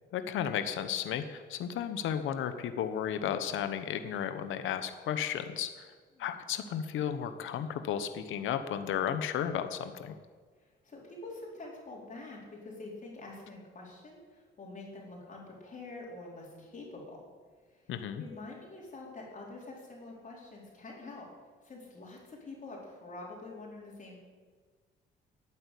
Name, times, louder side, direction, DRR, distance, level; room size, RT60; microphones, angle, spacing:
voice 1, 0.1-5.9 6.2-10.2 17.9-18.2, left 9 dB, 80° left, 9 dB, 1.0 m, -34 dB
voice 2, 10.6-17.2 17.7-17.8 18.2-21.3 21.6-24.2, left 2 dB, 40° left, -4 dB, 4.4 m, -46 dB
12.0 x 8.9 x 8.4 m, 1.5 s
cardioid pair, 90°, 20 cm